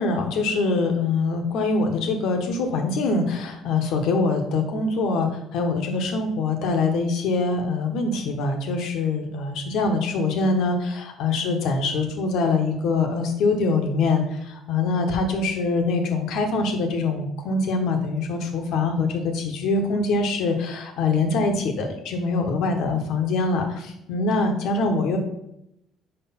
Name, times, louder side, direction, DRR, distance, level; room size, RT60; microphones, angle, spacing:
voice 1, 0.0-25.2, left 3 dB, 75° left, 4 dB, 1.2 m, -24 dB
4.9 x 4.5 x 5.7 m, 0.80 s
cardioid pair, 100°, 0 cm